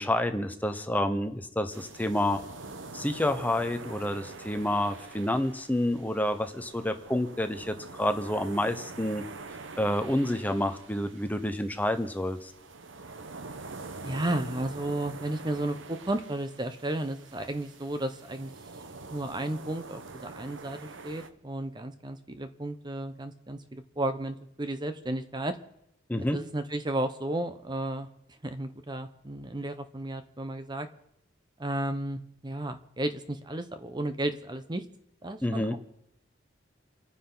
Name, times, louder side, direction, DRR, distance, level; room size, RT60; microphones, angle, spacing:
voice 1, 0.0-2.4 2.9-9.2 9.8-12.5 26.1-26.4 35.4-35.7, left 1 dB, 10° left, 8 dB, 0.9 m, -29 dB
sound 1, 1.7-21.3, right 3 dB, 75° right, 1.0 m, -45 dB
voice 2, 14.0-18.6 19.1-25.6 26.3-28.1 28.4-30.9 31.6-34.8 35.2-35.8, right 1 dB, 25° right, 9 dB, 0.8 m, -33 dB
29.0 x 9.9 x 4.0 m, 0.77 s
head